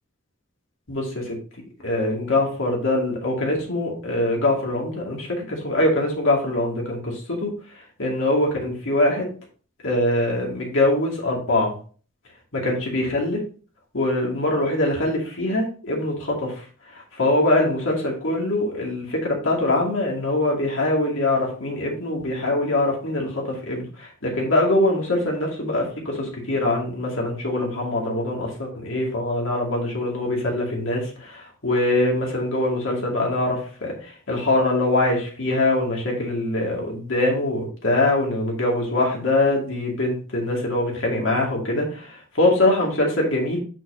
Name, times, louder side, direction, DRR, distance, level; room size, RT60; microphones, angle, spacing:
voice 1, 0.9-1.3 1.8-7.5 8.0-9.3 9.8-11.7 12.5-13.4 13.9-16.6 16.9-43.6, left 2 dB, 70° left, -2 dB, 2.3 m, -23 dB
6.9 x 6.0 x 2.8 m, 0.40 s
head